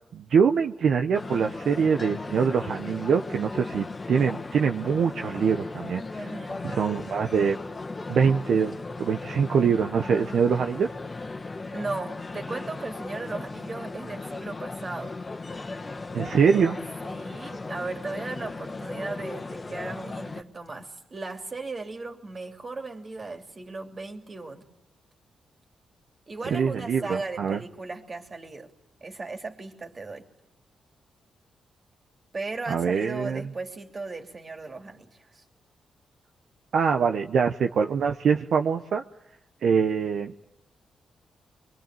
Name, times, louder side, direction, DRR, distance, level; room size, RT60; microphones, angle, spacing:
voice 1, 0.1-6.2 6.6-7.6 8.1-10.9 16.1-16.8 26.5-27.6 32.7-33.4 36.7-39.0 39.6-40.3, right 6 dB, 70° right, 5 dB, 0.9 m, -24 dB
sound 1, 1.1-20.4, left 3 dB, 35° left, 1.5 m, -37 dB
voice 2, 6.2-6.7 11.7-15.1 17.0-24.6 26.3-28.7 29.0-30.3 32.3-35.4, right 3 dB, 40° right, 4 dB, 3.1 m, -36 dB
23.0 x 23.0 x 9.0 m, 0.85 s
cardioid pair, 65°, 0 cm